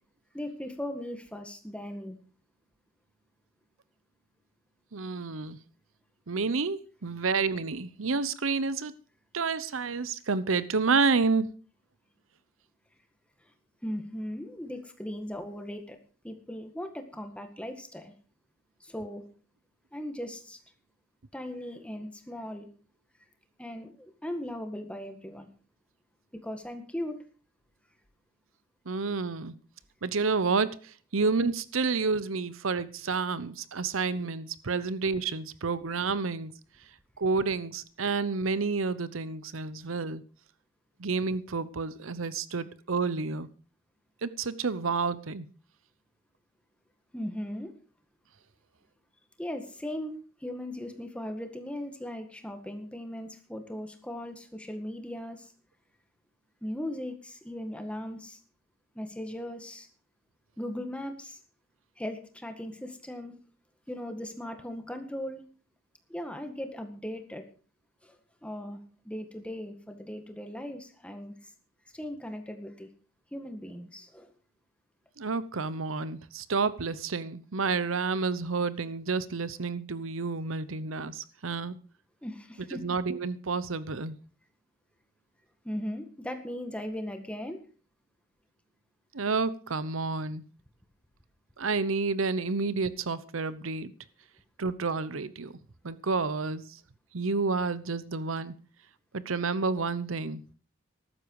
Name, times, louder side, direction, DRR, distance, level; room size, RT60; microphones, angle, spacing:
voice 1, 0.3-2.2 13.8-16.0 16.2-18.1 18.8-19.3 19.9-20.6 21.3-22.7 23.6-25.5 26.4-27.2 47.1-47.7 49.4-50.1 50.4-55.5 56.6-58.4 59.0-59.9 60.6-61.4 62.0-63.4 63.9-65.4 66.1-67.4 68.0-68.2 68.4-68.8 69.0-71.3 71.9-72.9 73.3-74.3 82.2-82.8 85.6-87.6, left 1 dB, 5° left, 6 dB, 1.8 m, -38 dB
voice 2, 4.9-5.6 6.3-8.9 9.3-11.5 28.9-29.5 30.0-36.5 37.2-40.2 41.0-43.5 44.2-45.5 75.2-81.8 82.7-84.2 89.1-90.4 91.6-93.9 94.6-95.6 95.8-96.8 97.1-98.5 99.1-100.4, right 4 dB, 90° right, 16 dB, 0.9 m, -30 dB
14.5 x 12.0 x 4.8 m, 0.39 s
head